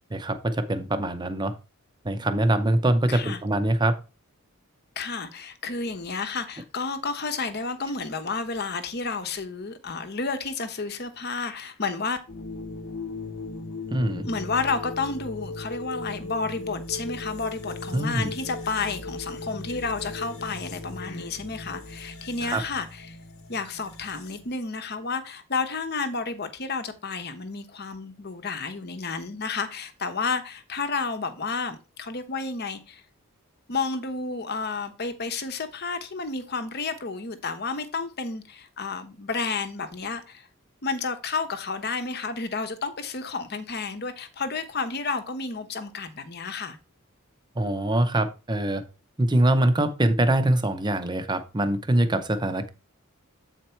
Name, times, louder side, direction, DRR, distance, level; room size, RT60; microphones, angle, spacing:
voice 1, 0.1-1.5 2.0-3.9 13.9-14.3 17.9-18.3 22.4-22.6 47.6-48.8 49.2-52.7, right 1 dB, 20° right, 0.7 m, -23 dB
voice 2, 3.1-3.4 5.0-12.2 14.2-23.2 23.5-33.0 33.7-40.5 40.8-46.8, left 4 dB, 50° left, 0.9 m, -31 dB
sound 1, 12.3-24.6, left 2 dB, 75° left, 1.0 m, -37 dB
8.1 x 4.4 x 4.4 m
head